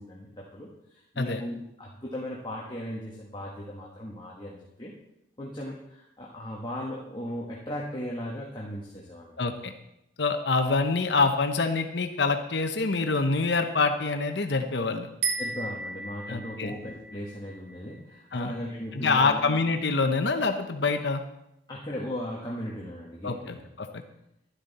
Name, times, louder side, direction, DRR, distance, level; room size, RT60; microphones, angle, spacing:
voice 1, 0.0-4.9 5.4-9.4 15.4-19.6 21.7-23.5, equal, 25° left, -4 dB, 1.5 m, -37 dB
voice 2, 9.4-9.7 10.2-15.1 16.3-16.7 18.3-18.5 18.9-21.2 23.2-24.0, left 4 dB, 70° left, 6 dB, 0.9 m, -26 dB
sound 1, 15.2-18.6, right 4 dB, 80° right, 1.5 m, -35 dB
11.5 x 11.5 x 4.2 m, 0.84 s
head